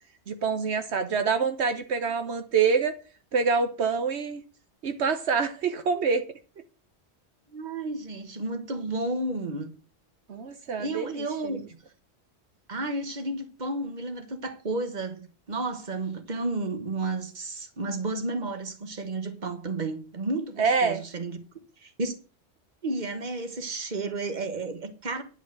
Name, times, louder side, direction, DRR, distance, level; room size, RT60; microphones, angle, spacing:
voice 1, 0.3-2.9 3.3-4.4 4.8-6.3 10.3-11.2 11.5-11.6 20.6-21.0, right 5 dB, 75° right, 1.2 m, -26 dB
voice 2, 7.5-9.7 10.8-11.6 12.7-21.4 21.8-22.2 22.8-25.2, right 2 dB, 40° right, 1.5 m, -32 dB
10.5 x 5.0 x 7.8 m
omnidirectional pair, 1.1 m